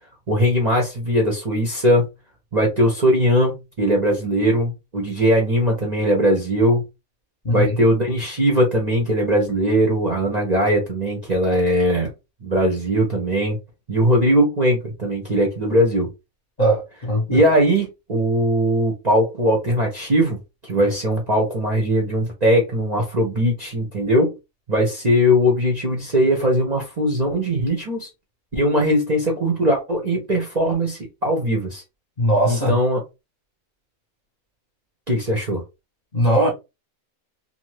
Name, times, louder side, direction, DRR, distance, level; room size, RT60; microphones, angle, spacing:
voice 1, 0.3-2.1 2.5-6.8 7.5-12.1 12.4-13.6 13.9-16.1 17.3-20.4 20.6-24.3 24.7-28.1 28.5-31.8 32.5-33.0 35.1-35.6, equal, 40° right, 0.7 m, -20 dB
voice 2, 7.4-7.8 16.6-17.5 32.2-32.8 36.1-36.5, right 1 dB, 35° left, 0.8 m, -19 dB
2.7 x 2.3 x 3.1 m
omnidirectional pair, 1.5 m